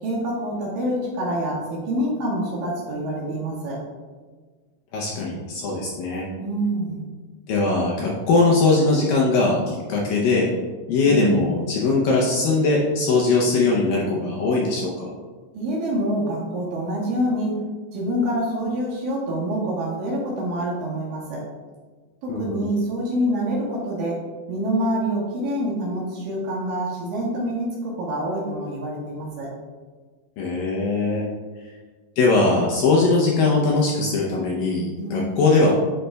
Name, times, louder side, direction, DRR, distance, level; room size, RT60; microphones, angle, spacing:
voice 1, 0.0-3.8 6.4-7.1 11.1-11.5 15.5-17.6 17.9-21.4 22.2-24.2 24.5-29.5 35.0-35.5, right 1 dB, 65° right, -5 dB, 2.6 m, -26 dB
voice 2, 4.9-6.3 7.5-10.5 10.9-15.1 22.3-22.7 30.4-31.2 32.2-35.7, left 3 dB, 80° left, -3 dB, 2.0 m, -20 dB
9.6 x 5.1 x 2.2 m, 1.4 s
omnidirectional pair, 4.8 m